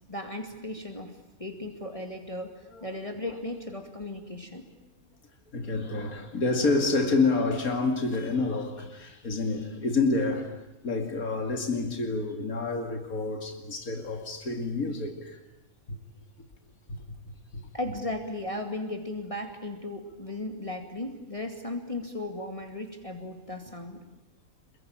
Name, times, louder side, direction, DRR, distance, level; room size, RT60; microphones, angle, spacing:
voice 1, 0.1-4.6 17.7-24.0, left 1 dB, 25° left, 2.3 m, -36 dB
voice 2, 5.5-10.5 10.8-15.4, left 3 dB, 80° left, 2.9 m, -28 dB
27.0 x 23.0 x 8.9 m
omnidirectional pair, 1.5 m